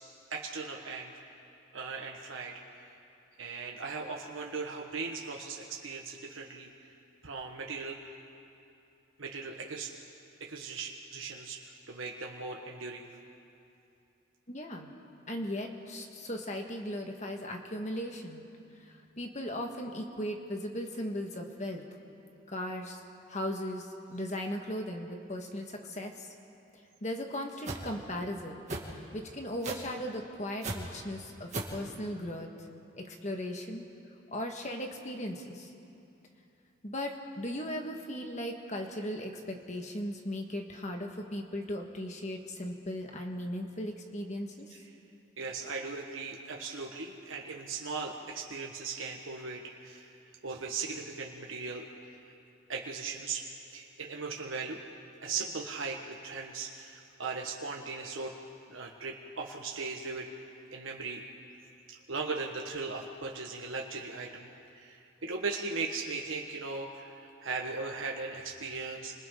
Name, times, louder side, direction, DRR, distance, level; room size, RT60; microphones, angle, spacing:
voice 1, 0.3-1.1 1.7-2.5 3.4-6.7 7.2-8.0 9.2-9.9 10.5-11.6 11.9-13.1 44.7-44.8 45.4-50.1 50.4-51.8 52.7-53.4 53.7-54.8 55.2-58.3 58.7-60.3 60.7-61.2 62.1-69.1, right 4 dB, 85° right, 0 dB, 1.5 m, -38 dB
voice 2, 14.5-14.9 15.3-18.4 19.2-21.8 22.5-23.0 23.3-26.3 27.0-28.6 29.1-32.5 33.1-33.9 34.3-35.7 36.8-44.7, left 1 dB, 35° left, 2 dB, 1.7 m, -37 dB
sound 1, 27.6-27.8 28.7-28.9 29.6-29.9 30.6-30.8 31.5-31.8, right 2 dB, 35° right, 2.3 m, -34 dB
29.5 x 26.0 x 3.9 m, 2.7 s
head